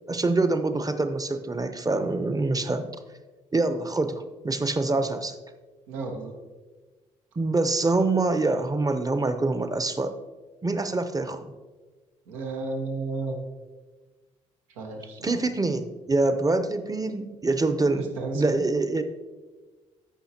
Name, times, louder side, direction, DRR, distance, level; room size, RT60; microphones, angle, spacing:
voice 1, 0.1-2.9 3.5-5.3 7.4-10.1 10.6-11.5 15.2-18.1 18.3-19.0, right 3 dB, 20° right, 9 dB, 0.8 m, -25 dB
voice 2, 5.9-6.3 12.3-13.4 14.7-15.3 17.9-18.6, right 3 dB, 80° right, 1 dB, 1.2 m, -33 dB
14.0 x 5.6 x 2.9 m, 1.3 s
hypercardioid pair, 45°, 17 cm